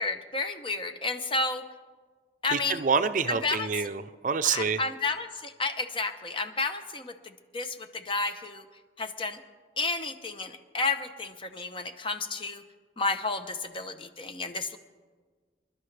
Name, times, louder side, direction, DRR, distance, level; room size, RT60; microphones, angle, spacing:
voice 1, 0.0-1.6 2.4-2.8 3.3-3.7 4.4-8.7 9.0-9.4 9.8-12.6 13.0-14.8, left 3 dB, 30° left, 8 dB, 0.8 m, -31 dB
voice 2, 2.5-4.8, right 5 dB, 50° right, 11 dB, 0.5 m, -27 dB
27.0 x 12.0 x 3.3 m, 1.5 s
head